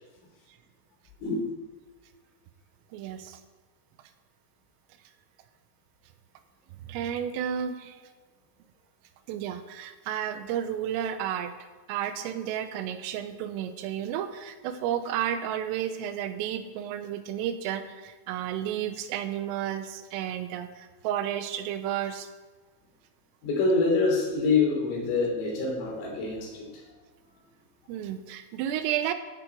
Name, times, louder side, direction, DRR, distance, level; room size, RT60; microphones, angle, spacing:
voice 1, 2.9-3.4 6.9-8.0 9.3-11.5 11.9-22.3 27.9-29.1, right 10 dB, 90° right, 9 dB, 3.5 m, -32 dB
voice 2, 23.4-26.7, left 3 dB, 85° left, -1 dB, 5.9 m, -25 dB
15.5 x 8.8 x 4.6 m, 1.3 s
omnidirectional pair, 5.8 m